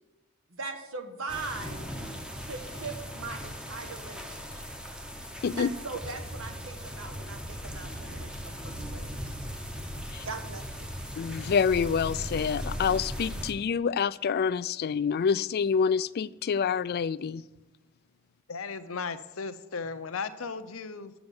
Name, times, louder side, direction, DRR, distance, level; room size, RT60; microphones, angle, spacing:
voice 1, 0.5-1.9 2.4-4.7 5.6-9.5 10.2-10.9, right 4 dB, 80° right, 5 dB, 1.4 m, -40 dB
sound 1, 1.3-13.5, equal, 5° right, 0.8 m, -38 dB
voice 2, 11.2-17.4, left 6 dB, 50° left, 17 dB, 0.3 m, -27 dB
voice 3, 18.5-21.1, left 5 dB, 85° left, 11 dB, 0.7 m, -36 dB
7.8 x 7.0 x 8.1 m, 1.1 s
head